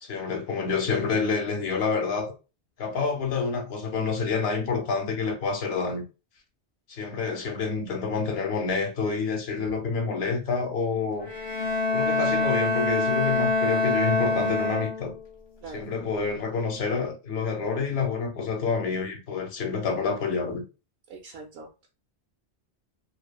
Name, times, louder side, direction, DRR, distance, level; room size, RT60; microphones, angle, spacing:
voice 1, 0.0-2.3 2.8-6.0 6.9-11.3 11.9-15.1 15.7-20.6, left 5 dB, 65° left, 0.9 m, -28 dB
Bowed string instrument, 11.2-15.3, left 2 dB, 45° left, 0.4 m, -25 dB
voice 2, 21.1-21.9, right 4 dB, 70° right, 0.8 m, -43 dB
2.6 x 2.5 x 2.2 m
omnidirectional pair, 1.2 m